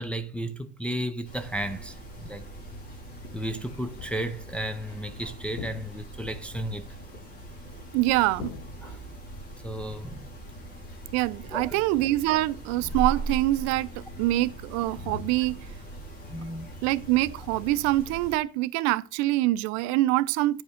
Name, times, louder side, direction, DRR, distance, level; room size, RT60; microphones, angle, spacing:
voice 1, 0.0-2.5 3.3-6.9 8.8-9.0 9.6-10.3 11.5-11.8 16.3-16.7, right 1 dB, 5° left, 0.4 m, -34 dB
sound 1, 1.2-18.4, right 2 dB, 35° left, 3.4 m, -40 dB
sound 2, 4.0-4.5 5.6-6.3 8.4-9.3, left 10 dB, 70° left, 0.8 m, -42 dB
voice 2, 7.9-8.5 11.1-15.7 16.8-20.6, right 17 dB, 60° right, 0.5 m, -25 dB
9.3 x 5.2 x 5.0 m
cardioid pair, 160°, 30 cm